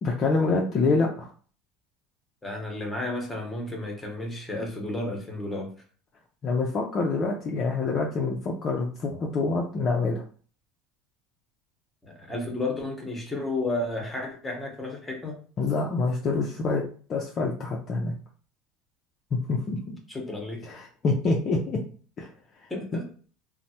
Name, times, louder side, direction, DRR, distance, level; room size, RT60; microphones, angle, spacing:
voice 1, 0.0-1.3 6.4-10.2 15.6-16.8 17.1-18.1 19.3-19.8 20.7-21.8 22.2-22.3, left 3 dB, 30° left, -1 dB, 0.4 m, -26 dB
voice 2, 2.4-5.7 12.0-15.4 20.1-20.7 22.7-23.1, left 2 dB, 10° left, 1 dB, 0.8 m, -32 dB
3.2 x 2.0 x 2.7 m, 0.42 s
cardioid pair, 145°, 0 cm